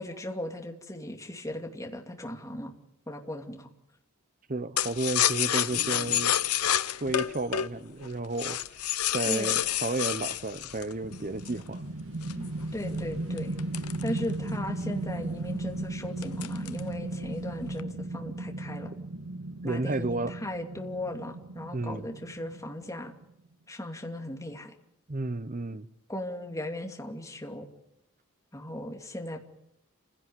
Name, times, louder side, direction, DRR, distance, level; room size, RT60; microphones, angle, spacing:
voice 1, 0.0-2.7 3.1-3.7 9.2-9.6 12.3-12.5 12.7-13.5 14.0-18.9 19.6-23.1 23.7-24.7 26.1-27.7 28.5-29.4, left 1 dB, 15° left, 2.6 m, -37 dB
voice 2, 4.5-6.3 7.0-8.6 9.1-11.8 19.6-20.3 21.7-22.1 25.1-25.9, right 2 dB, 35° right, 0.9 m, -32 dB
sound 1, 4.8-11.7 12.2-14.7 15.0-15.1 15.4-15.8 16.2-16.9 17.2-17.8, left 11 dB, 90° left, 0.9 m, -29 dB
sound 2, 11.0-23.2, right 2 dB, 75° right, 1.6 m, -36 dB
28.5 x 16.5 x 9.5 m
head